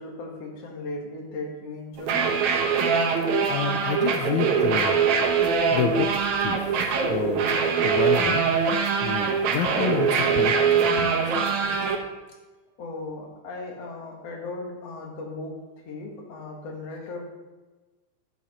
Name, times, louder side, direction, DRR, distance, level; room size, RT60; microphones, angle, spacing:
voice 1, 0.0-2.4 12.8-17.2, left 2 dB, 50° left, 0 dB, 2.5 m, -37 dB
sound 1, 2.0-12.0, right 6 dB, 65° right, 2.2 m, -23 dB
voice 2, 2.9-5.0 5.7-6.1 6.4-6.8 7.1-7.6 7.8-10.5 10.8-11.5, left 8 dB, 85° left, 6 dB, 1.7 m, -30 dB
13.5 x 7.3 x 4.3 m, 1.2 s
omnidirectional pair, 4.1 m